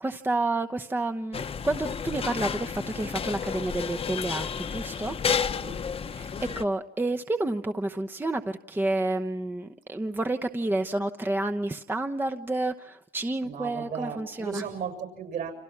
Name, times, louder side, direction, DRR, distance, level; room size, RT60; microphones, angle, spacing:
voice 1, 0.0-5.2 6.1-14.6, right 2 dB, 10° right, 0.9 m, -30 dB
sound 1, 1.3-6.6, left 6 dB, 35° left, 1.1 m, -31 dB
voice 2, 5.4-5.8 6.3-6.6 13.4-15.5, right 7 dB, 60° right, 6.8 m, -36 dB
29.5 x 27.0 x 5.9 m
cardioid pair, 110°, 17 cm